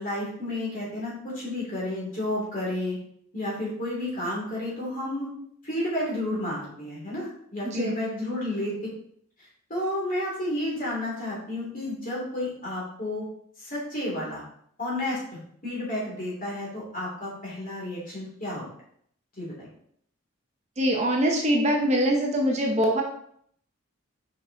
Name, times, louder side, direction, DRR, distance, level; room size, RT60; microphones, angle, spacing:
voice 1, 0.0-3.0 3.3-5.3 5.6-8.7 9.7-13.2 13.6-14.4 14.8-15.2 15.6-18.6 19.4-19.7, left 1 dB, 40° left, -5 dB, 2.8 m, -31 dB
voice 2, 7.6-8.0 20.8-23.0, equal, 30° right, 1 dB, 0.7 m, -23 dB
5.3 x 5.2 x 3.9 m, 0.66 s
head